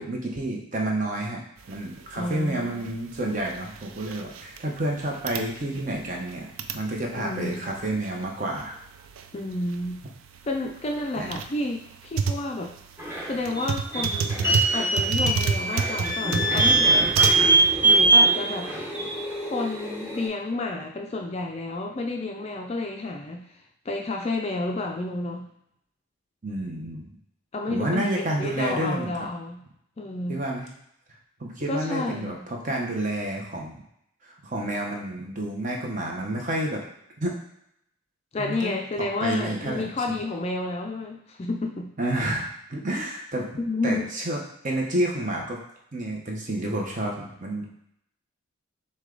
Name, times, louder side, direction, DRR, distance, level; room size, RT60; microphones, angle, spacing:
voice 1, 0.0-1.4 1.7-6.5 6.7-8.7 11.2-11.3 26.4-27.1 27.7-29.3 30.3-30.7 31.4-33.7 34.2-36.8 37.2-37.4 38.4-38.7 39.2-39.8 42.0-43.5 43.8-45.6 45.9-47.6, right 1 dB, 35° right, -1 dB, 0.8 m, -29 dB
sound 1, 1.6-17.7, right 5 dB, 75° right, 0.3 m, -32 dB
voice 2, 2.1-2.8 7.1-7.7 9.3-10.0 10.4-12.7 13.3-17.1 17.8-18.7 19.4-23.5 23.9-25.5 27.5-29.6 30.0-30.4 31.7-32.4 38.3-41.9 43.6-44.1, left 2 dB, 30° left, 2 dB, 0.4 m, -30 dB
sound 2, 13.0-20.3, right 3 dB, 10° right, 0.9 m, -22 dB
6.2 x 2.3 x 3.8 m, 0.75 s
head